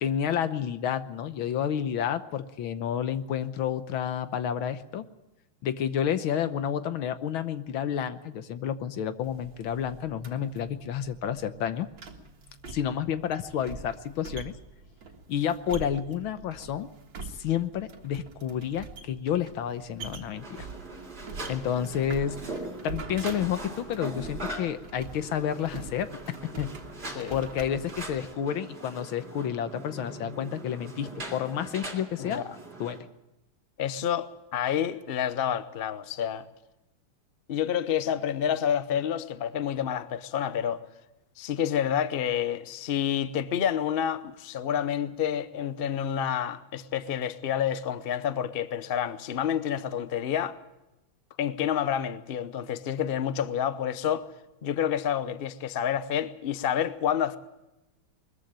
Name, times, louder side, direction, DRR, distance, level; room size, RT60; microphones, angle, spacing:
voice 1, 0.0-5.1 5.6-11.9 12.7-14.6 15.3-16.9 17.2-20.7 21.5-22.5 22.8-26.7 27.0-32.4 32.8-33.0, left 9 dB, 80° left, 1.8 m, -30 dB
sound 1, 9.2-28.3, right 4 dB, 65° right, 2.5 m, -44 dB
sound 2, 20.3-33.0, right 2 dB, 30° right, 3.5 m, -41 dB
voice 2, 33.8-36.4 37.5-40.8 41.4-50.6 51.4-54.2 54.6-57.4, left 9 dB, 60° left, 0.5 m, -29 dB
21.0 x 14.5 x 9.0 m
omnidirectional pair, 2.3 m